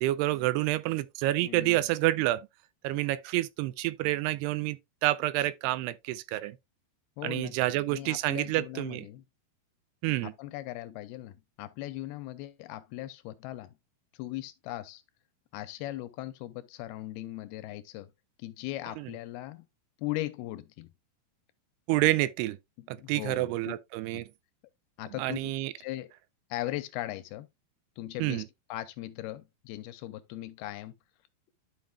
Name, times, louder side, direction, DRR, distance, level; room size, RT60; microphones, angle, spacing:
voice 1, 0.0-2.5 2.8-6.6 7.2-9.1 10.0-10.3 19.0-19.1 21.9-22.6 22.9-24.3 25.2-25.7 28.2-28.4, right 17 dB, 85° right, 2.5 m, -28 dB
voice 2, 1.4-1.8 7.2-7.5 7.9-9.2 10.2-13.7 14.2-15.0 15.5-18.1 18.4-19.7 20.0-20.9 22.8-23.7 24.1-24.2 25.0-25.5 25.8-26.1 26.5-27.5 28.0-28.4 28.7-30.9, left 16 dB, 80° left, 2.4 m, -39 dB
12.0 x 5.6 x 2.2 m
omnidirectional pair, 4.7 m